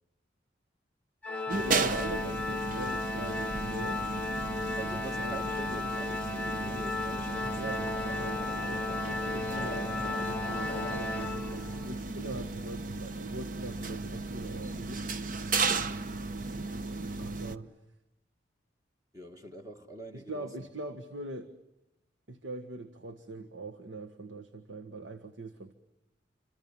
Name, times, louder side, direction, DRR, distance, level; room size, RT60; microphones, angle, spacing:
Organ, 1.2-12.0, left 3 dB, 10° left, 0.9 m, -35 dB
voice 1, 1.3-4.0 5.2-5.4 5.7-5.8 7.5-15.0 17.2-17.7 20.1-21.5 22.3-25.7, right 2 dB, 70° right, 1.6 m, -42 dB
sound 1, 1.5-17.6, right 3 dB, 45° right, 1.1 m, -35 dB
voice 2, 4.8-7.9 19.1-20.5, right 1 dB, 20° right, 1.6 m, -45 dB
sound 2, 6.7-11.4, left 2 dB, 35° left, 0.9 m, -43 dB
28.5 x 25.5 x 7.3 m
head